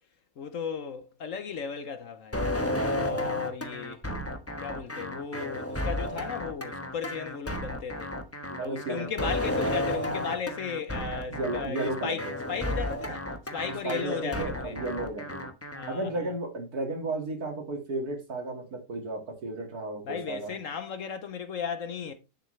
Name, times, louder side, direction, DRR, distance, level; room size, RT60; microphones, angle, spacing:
voice 1, 0.4-2.5 2.9-4.0 4.6-8.2 8.6-14.8 15.7-16.2 20.0-22.1, left 6 dB, 60° left, 1.1 m, -35 dB
sound 1, 2.3-15.9, left 1 dB, 10° left, 0.8 m, -32 dB
voice 2, 8.5-9.3 11.4-12.3 13.8-15.4 15.9-20.5, right 2 dB, 65° right, 2.6 m, -33 dB
9.7 x 7.1 x 3.2 m
omnidirectional pair, 1.7 m